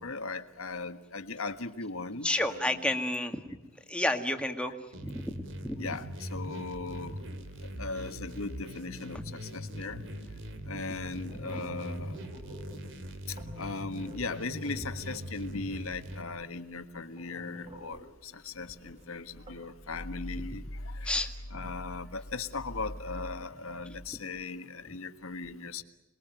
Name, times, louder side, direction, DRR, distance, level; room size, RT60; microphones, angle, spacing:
voice 1, 0.0-2.9 5.8-7.2 7.8-10.0 10.7-12.1 13.6-21.1 21.5-25.8, left 3 dB, 80° left, 1.6 m, -38 dB
voice 2, 2.2-3.6 3.9-4.7 5.0-5.8 10.0-10.1 21.0-21.3 21.6-21.7, left 1 dB, 5° left, 1.9 m, -31 dB
sound 1, 4.9-16.2, equal, 65° right, 2.5 m, -41 dB
sound 2, 9.9-19.9, equal, 35° right, 6.7 m, -52 dB
27.5 x 21.5 x 9.1 m
head